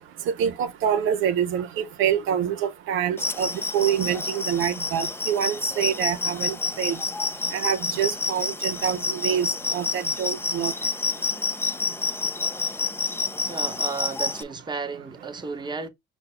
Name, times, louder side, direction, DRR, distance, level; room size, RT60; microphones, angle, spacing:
voice 1, 0.4-3.5 3.7-6.9 7.5-9.5 9.7-10.7, right 9 dB, 85° right, 0.6 m, -26 dB
sound 1, 3.2-14.4, left 3 dB, 10° left, 0.4 m, -28 dB
voice 2, 13.4-15.9, right 4 dB, 20° right, 0.9 m, -33 dB
5.3 x 2.2 x 4.2 m
cardioid pair, 90°, 20 cm